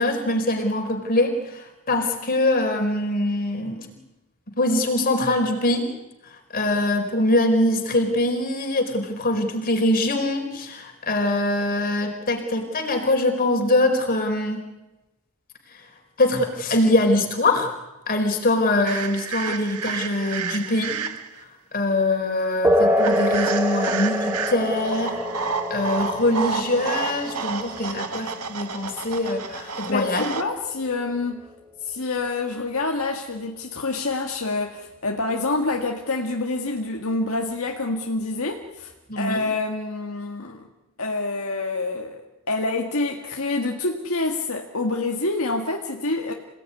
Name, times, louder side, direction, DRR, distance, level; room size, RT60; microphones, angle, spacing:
voice 1, 0.0-3.9 4.5-5.9 6.5-14.6 15.7-15.8 16.2-17.7 18.1-21.0 21.7-30.3 39.1-39.4, left 1 dB, 40° left, 4 dB, 4.4 m, -23 dB
sound 1, 18.9-21.4 23.0-30.4, right 5 dB, 85° right, 1.8 m, -31 dB
sound 2, 22.6-30.7, left 1 dB, 10° right, 3.3 m, -26 dB
voice 2, 29.7-31.5 31.8-40.7 41.0-46.3, left 3 dB, 65° left, 2 dB, 1.9 m, -27 dB
27.0 x 18.0 x 9.7 m, 1.0 s
head